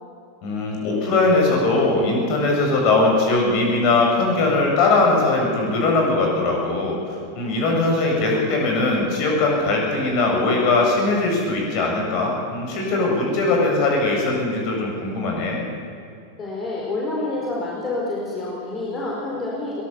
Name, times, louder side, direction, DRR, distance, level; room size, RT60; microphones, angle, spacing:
voice 1, 0.4-15.6, left 3 dB, 40° left, 0 dB, 7.2 m, -20 dB
voice 2, 16.4-19.8, left 2 dB, 20° left, -4 dB, 4.6 m, -28 dB
22.5 x 19.0 x 7.2 m, 2.4 s
figure-of-eight pair, 90°, 0 cm